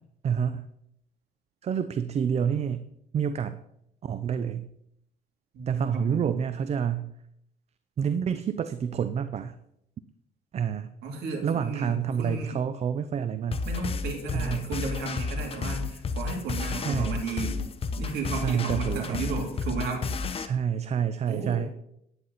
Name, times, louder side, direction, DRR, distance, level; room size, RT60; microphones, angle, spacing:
voice 1, 0.2-0.7 1.6-2.9 3.1-3.6 4.0-4.7 5.7-7.1 8.0-9.6 10.5-10.9 11.4-13.6 14.3-14.7 16.8-17.2 18.4-19.4 20.4-21.7, right 7 dB, 40° right, 11 dB, 0.5 m, -28 dB
voice 2, 5.5-6.3 11.0-12.6 13.6-17.6 18.0-20.2 21.3-21.6, right 4 dB, 70° right, 1 dB, 3.0 m, -34 dB
sound 1, 13.5-20.5, left 4 dB, 35° left, 0.8 m, -32 dB
10.5 x 9.4 x 4.1 m, 0.77 s
cardioid pair, 110°, 17 cm